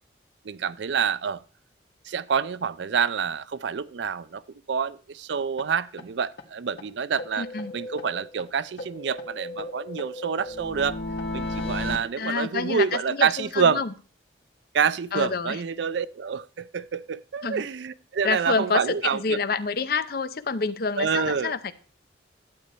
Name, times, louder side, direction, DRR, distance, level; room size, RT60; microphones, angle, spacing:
voice 1, 0.4-1.4 2.0-4.4 4.7-7.5 7.7-11.0 11.3-13.8 14.7-19.4 21.0-21.5, right 6 dB, 70° right, 0.4 m, -27 dB
sound 1, 5.6-5.7 6.0-6.1 6.4-6.5 6.8-6.9 7.2-8.5 8.8-12.0, left 2 dB, 70° left, 1.5 m, -34 dB
voice 2, 7.4-7.7 12.2-13.9 15.1-15.6 17.4-17.6 18.2-21.7, left 4 dB, 55° left, 0.6 m, -28 dB
12.0 x 8.3 x 4.3 m
head